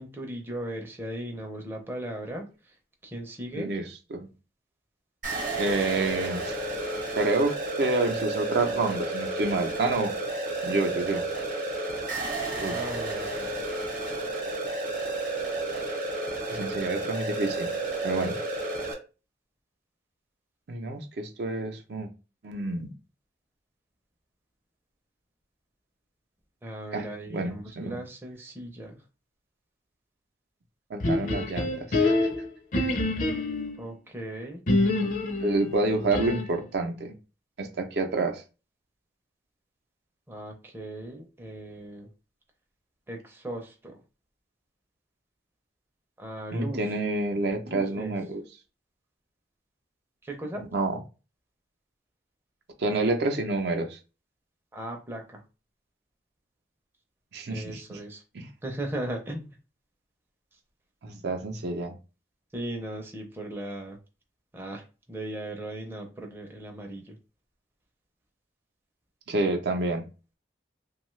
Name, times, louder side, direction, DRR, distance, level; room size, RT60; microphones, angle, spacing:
voice 1, 0.0-2.4 3.0-3.7 12.7-13.5 26.6-29.0 33.8-34.6 40.3-42.1 43.1-44.0 46.2-46.8 47.6-48.1 50.2-50.6 54.7-55.4 57.5-58.2 58.6-59.5 62.5-64.0 64.5-67.2, right 1 dB, 15° right, 1 dB, 0.5 m, -37 dB
voice 2, 3.5-4.3 5.5-6.5 7.2-10.1 10.6-11.2 12.6-12.8 16.5-17.7 18.0-18.4 20.7-22.1 22.4-22.9 26.9-28.0 30.9-32.2 32.7-32.9 35.4-37.1 37.6-38.4 46.5-48.4 50.7-51.0 52.8-54.0 57.3-58.0 58.3-58.5 61.0-61.9 69.3-70.1, right 2 dB, 65° right, 5 dB, 0.5 m, -28 dB
sound 1, 5.2-18.9, right 2 dB, 50° right, 0.9 m, -31 dB
sound 2, 31.0-33.8 34.7-36.6, left 2 dB, 45° left, 0.5 m, -26 dB
2.6 x 2.3 x 3.1 m, 0.31 s
head